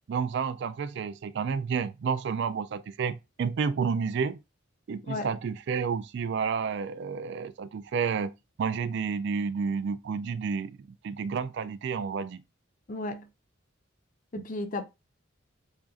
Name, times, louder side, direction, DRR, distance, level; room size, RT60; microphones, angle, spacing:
voice 1, 0.1-4.4 4.9-8.3 8.6-10.8 11.0-12.4, right 6 dB, 55° right, 0.3 m, -30 dB
voice 2, 12.9-13.3 14.3-14.8, left 2 dB, 40° left, 0.6 m, -34 dB
7.2 x 2.5 x 2.4 m
head